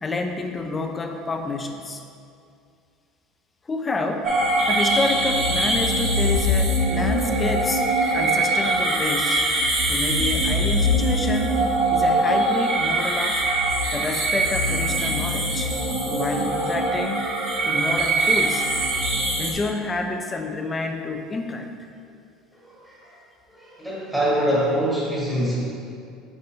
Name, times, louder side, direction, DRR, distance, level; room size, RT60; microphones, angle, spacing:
voice 1, 0.0-2.0 3.7-4.3 4.7-7.8 8.1-9.4 9.9-11.6 11.9-13.4 13.9-15.7 16.0-17.3 17.7-18.7 19.4-21.7, left 3 dB, 20° left, 4 dB, 0.5 m, -28 dB
sound 1, 4.2-19.5, right 1 dB, 50° right, 1.1 m, -22 dB
voice 2, 22.6-23.1 23.5-25.6, equal, ahead, -8 dB, 1.5 m, -24 dB
6.4 x 5.4 x 2.8 m, 2.4 s
cardioid pair, 135°, 0 cm